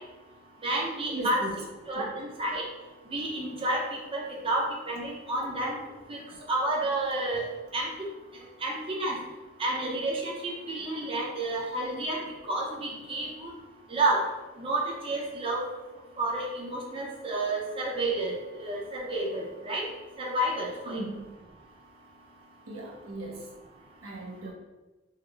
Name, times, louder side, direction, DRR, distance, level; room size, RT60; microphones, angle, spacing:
voice 1, 0.6-1.4 1.9-2.6 3.1-5.8 6.1-6.2 6.5-7.5 7.7-7.9 8.6-9.2 9.6-12.2 12.5-13.5 13.9-14.2 14.6-15.6 16.2-18.3 18.6-19.8 20.2-21.0, right 2 dB, 25° right, -2 dB, 0.5 m, -30 dB
voice 2, 1.1-1.5 1.9-2.1 20.9-21.3 22.7-23.4 24.0-24.5, right 2 dB, 85° right, 0 dB, 0.6 m, -37 dB
3.7 x 2.0 x 3.2 m, 1.2 s
head